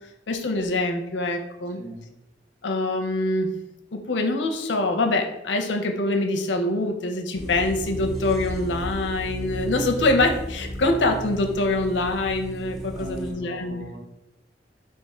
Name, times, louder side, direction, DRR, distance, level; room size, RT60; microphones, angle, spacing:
voice 1, 0.3-1.8 2.6-3.5 3.9-13.9, left 2 dB, 85° left, 4 dB, 0.6 m, -24 dB
voice 2, 1.7-2.1 12.9-14.0, right 1 dB, 50° right, -5 dB, 1.5 m, -40 dB
sound 1, 7.3-13.3, equal, ahead, 0.7 m, -34 dB
3.5 x 3.2 x 4.3 m, 0.90 s
head